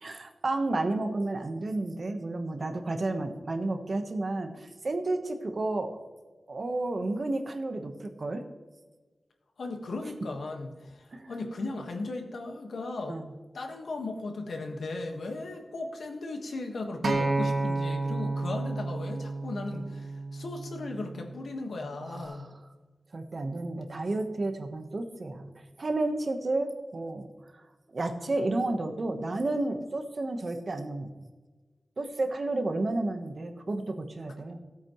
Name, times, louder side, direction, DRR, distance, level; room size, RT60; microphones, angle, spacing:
voice 1, 0.0-6.0 6.5-8.4 11.1-11.3 13.1-13.3 22.1-22.5 23.1-25.5 25.8-27.3 27.9-31.1 32.0-34.6, right 2 dB, 45° right, 6 dB, 1.1 m, -31 dB
voice 2, 9.6-13.2 13.5-22.5, left 2 dB, 85° left, 3 dB, 1.5 m, -37 dB
Acoustic guitar, 17.0-21.3 22.1-22.2, right 2 dB, 65° right, 1.5 m, -31 dB
17.5 x 8.4 x 3.1 m, 1.3 s
wide cardioid pair, 130°, 0 cm